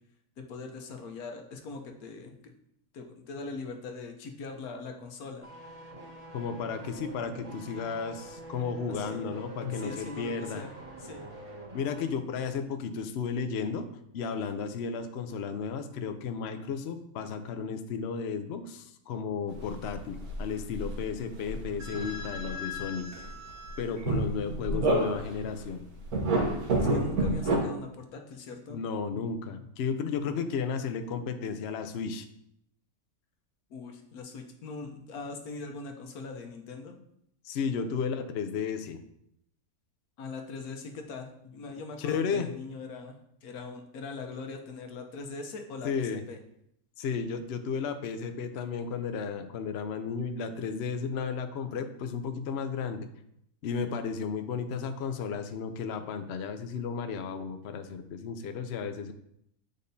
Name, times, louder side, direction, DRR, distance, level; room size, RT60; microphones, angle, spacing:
voice 1, 0.4-2.5 2.9-5.5 8.9-9.4 9.7-10.7 11.0-11.2 26.8-28.8 33.7-37.0 40.2-43.2 43.4-46.4, left 3 dB, 75° left, 4 dB, 1.3 m, -41 dB
sound 1, 5.4-12.1 12.4-12.5, right 1 dB, 55° right, 3.3 m, -45 dB
voice 2, 6.3-10.6 11.7-13.9 14.1-23.1 23.8-25.8 28.7-32.3 37.4-39.0 42.0-42.5 45.8-46.2 47.0-53.1 53.6-59.1, left 6 dB, 60° left, 8 dB, 0.7 m, -33 dB
sound 2, 19.5-21.1 21.4-25.5 26.0-27.6, right 2 dB, 75° right, 1.6 m, -30 dB
8.4 x 5.1 x 2.7 m, 0.74 s
omnidirectional pair, 1.6 m